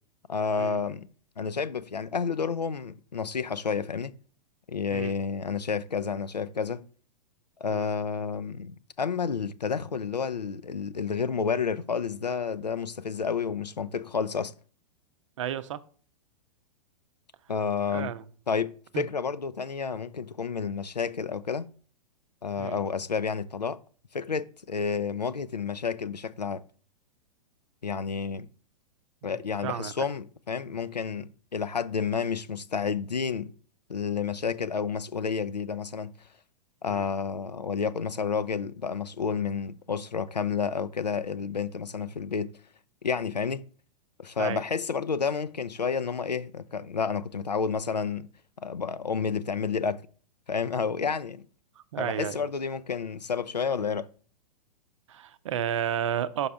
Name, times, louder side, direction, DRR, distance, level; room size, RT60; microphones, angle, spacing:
voice 1, 0.3-1.1 1.4-4.1 4.7-6.8 7.6-14.5 17.5-18.1 18.5-21.7 22.4-23.8 24.1-26.6 27.8-28.5 29.2-33.5 33.9-36.1 36.8-42.6 43.0-43.6 44.2-48.3 48.6-50.0 50.5-51.5 52.0-54.1, left 6 dB, 80° left, 0.5 m, -30 dB
voice 2, 15.4-15.8 17.9-18.2 18.9-19.1 22.6-22.8 29.2-30.1 36.9-37.1 44.4-44.6 51.9-52.4 55.1-56.5, right 10 dB, 50° right, 0.6 m, -32 dB
5.8 x 5.4 x 3.4 m
figure-of-eight pair, 105°, 21 cm